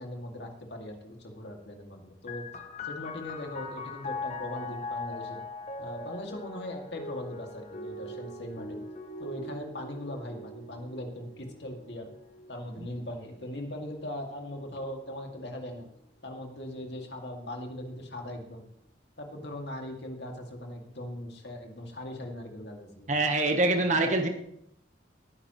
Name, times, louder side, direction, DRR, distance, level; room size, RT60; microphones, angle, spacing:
voice 1, 0.0-2.4 2.8-5.4 5.8-8.8 9.2-12.1 12.5-15.9 16.2-18.6 19.2-23.1, left 1 dB, 70° left, 2 dB, 2.3 m, -40 dB
sound 1, 2.3-15.5 16.4-17.1, left 2 dB, 40° left, 1.0 m, -42 dB
voice 2, 23.1-24.3, right 2 dB, 40° right, 4 dB, 1.1 m, -24 dB
19.0 x 9.9 x 3.1 m, 0.74 s
head